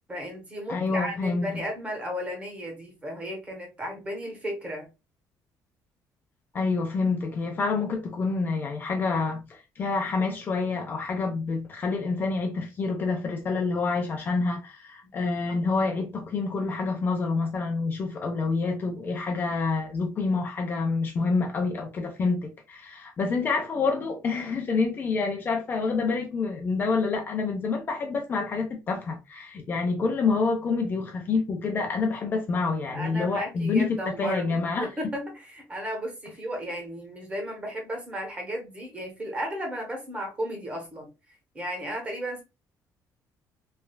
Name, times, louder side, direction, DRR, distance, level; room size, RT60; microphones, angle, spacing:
voice 1, 0.1-4.9 15.0-15.3 32.9-41.1 41.5-42.4, equal, 15° right, 0.8 m, -34 dB
voice 2, 0.7-1.5 6.5-34.9, left 4 dB, 30° left, 0.4 m, -27 dB
3.2 x 2.3 x 2.2 m
cardioid pair, 165°, 7 cm